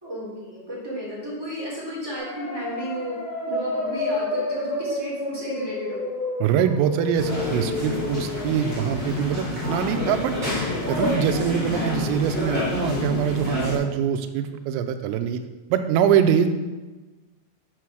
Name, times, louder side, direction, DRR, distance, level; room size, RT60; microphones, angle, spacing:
voice 1, 0.0-3.2 3.4-6.0, right 1 dB, 10° right, -8 dB, 1.6 m, -33 dB
sound 1, 2.1-9.0, left 2 dB, 90° left, 1.6 m, -30 dB
voice 2, 6.4-10.3 10.9-15.4 15.7-16.5, right 8 dB, 85° right, 9 dB, 3.2 m, -23 dB
sound 2, 7.1-13.7, left 2 dB, 35° right, 0.9 m, -28 dB
9.1 x 4.8 x 6.0 m, 1.2 s
omnidirectional pair, 5.9 m